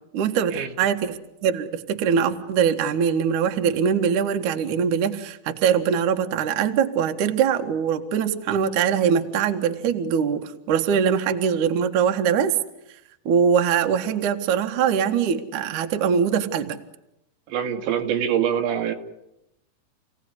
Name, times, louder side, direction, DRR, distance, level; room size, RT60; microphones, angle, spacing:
voice 1, 0.1-12.6 13.3-16.8, right 7 dB, 55° right, 6 dB, 2.6 m, -22 dB
voice 2, 17.5-18.9, right 9 dB, 85° right, 4 dB, 4.3 m, -24 dB
29.5 x 18.0 x 9.8 m, 0.85 s
omnidirectional pair, 5.1 m